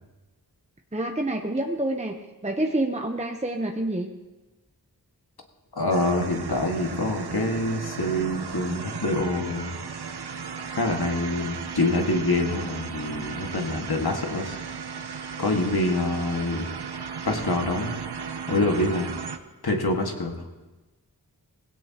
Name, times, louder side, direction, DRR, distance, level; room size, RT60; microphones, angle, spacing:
voice 1, 0.9-2.2 2.4-4.1, right 1 dB, 20° right, 3 dB, 0.8 m, -27 dB
voice 2, 5.7-9.8 10.8-14.6 15.4-16.7 17.2-18.0 18.5-19.1 19.6-20.4, left 2 dB, 75° left, 2 dB, 1.8 m, -26 dB
sound 1, 5.9-19.4, right 6 dB, 90° right, 0.8 m, -35 dB
20.0 x 17.0 x 2.9 m, 1.1 s
wide cardioid pair, 55°, 38 cm